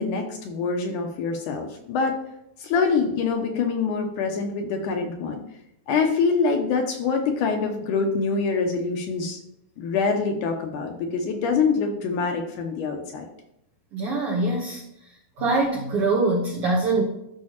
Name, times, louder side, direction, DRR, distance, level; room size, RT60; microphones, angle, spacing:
voice 1, 0.0-2.1 2.6-5.4 5.9-9.4 9.8-13.3, left 5 dB, 75° left, 4 dB, 2.1 m, -25 dB
voice 2, 13.9-14.8 15.4-17.0, right 3 dB, 75° right, -1 dB, 1.3 m, -23 dB
13.0 x 5.5 x 2.9 m, 0.80 s
omnidirectional pair, 4.2 m